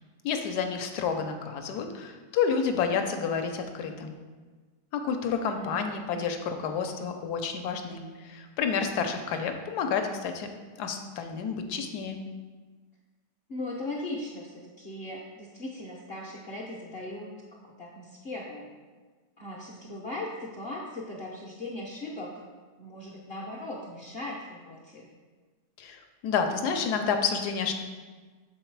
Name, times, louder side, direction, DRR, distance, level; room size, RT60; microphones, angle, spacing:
voice 1, 0.2-4.1 4.9-10.5 10.8-12.2 25.8-27.7, left 6 dB, 75° left, 6 dB, 1.1 m, -30 dB
voice 2, 5.4-6.0 8.7-8.9 13.5-18.7 19.4-22.4 22.8-25.1, left 1 dB, 50° left, -3 dB, 0.7 m, -39 dB
6.8 x 4.0 x 4.5 m, 1.4 s
omnidirectional pair, 1.8 m